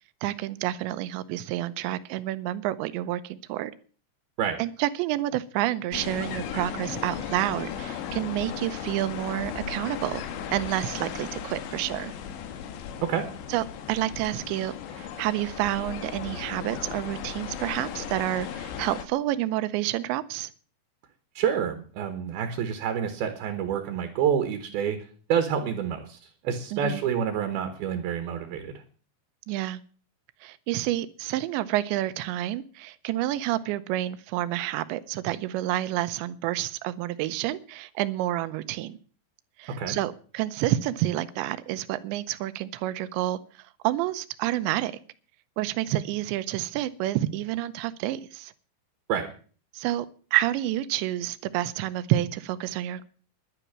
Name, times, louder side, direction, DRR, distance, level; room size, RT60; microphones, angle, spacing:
voice 1, 0.2-3.7 4.6-10.2 10.5-12.1 13.5-20.5 26.7-27.0 29.5-29.8 30.4-39.0 39.6-43.4 43.8-44.9 45.6-48.5 49.7-50.1 50.3-53.0, right 14 dB, 85° right, 14 dB, 3.0 m, -29 dB
sound 1, 5.9-19.1, left 8 dB, 80° left, 3.5 m, -36 dB
voice 2, 21.3-25.0 25.3-26.2 26.4-28.7 39.8-40.0 49.1-49.3, right 8 dB, 65° right, 7 dB, 2.9 m, -28 dB
11.5 x 10.0 x 7.4 m, 0.42 s
omnidirectional pair, 5.2 m